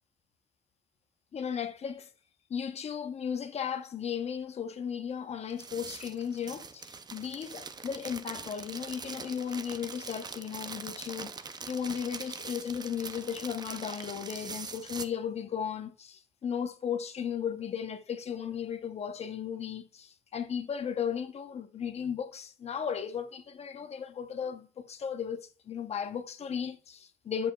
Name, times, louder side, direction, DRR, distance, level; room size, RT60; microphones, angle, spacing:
voice 1, 1.3-2.1 2.5-11.3 11.7-27.5, left 7 dB, 40° left, 0.8 m, -35 dB
sound 1, 5.5-15.1, right 5 dB, 25° right, 0.5 m, -43 dB
7.9 x 6.8 x 2.3 m
cardioid pair, 110°, 17 cm